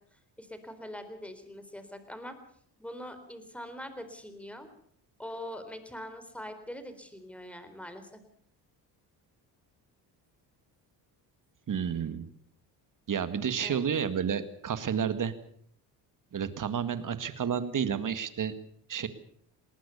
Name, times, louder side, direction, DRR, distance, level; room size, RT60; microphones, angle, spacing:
voice 1, 0.1-2.4 2.8-4.7 5.2-8.2 13.6-13.8, equal, 5° left, 9 dB, 4.1 m, -43 dB
voice 2, 11.7-12.3 13.1-15.3 16.3-18.5 18.9-19.1, right 7 dB, 45° right, 12 dB, 2.1 m, -30 dB
21.0 x 19.0 x 6.9 m, 0.63 s
cardioid pair, 90°, 44 cm